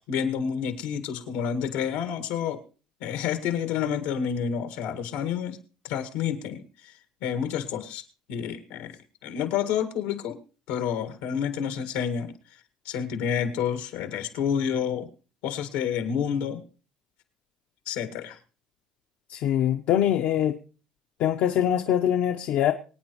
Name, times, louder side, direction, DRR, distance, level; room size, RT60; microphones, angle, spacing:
voice 1, 0.1-2.6 3.0-5.6 5.8-6.9 7.2-8.0 8.3-9.0 9.2-10.4 10.7-12.3 12.9-15.1 15.4-16.6 17.9-18.4, left 8 dB, 90° left, 8 dB, 1.9 m, -29 dB
voice 2, 19.3-20.6 21.2-22.7, left 10 dB, 70° left, 4 dB, 0.9 m, -23 dB
24.0 x 9.2 x 3.1 m, 0.37 s
supercardioid pair, 105°, 3 cm